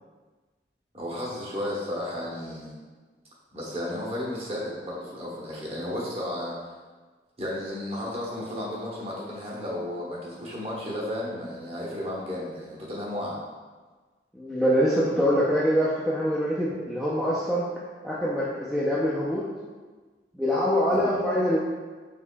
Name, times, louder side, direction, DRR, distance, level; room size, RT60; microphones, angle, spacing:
voice 1, 0.9-2.7 3.5-6.6 7.4-13.4 20.9-21.1, left 1 dB, 35° right, -5 dB, 0.9 m, -33 dB
voice 2, 14.3-17.7 18.0-19.4 20.4-21.6, equal, ahead, -8 dB, 0.4 m, -24 dB
5.1 x 3.6 x 2.2 m, 1.4 s
head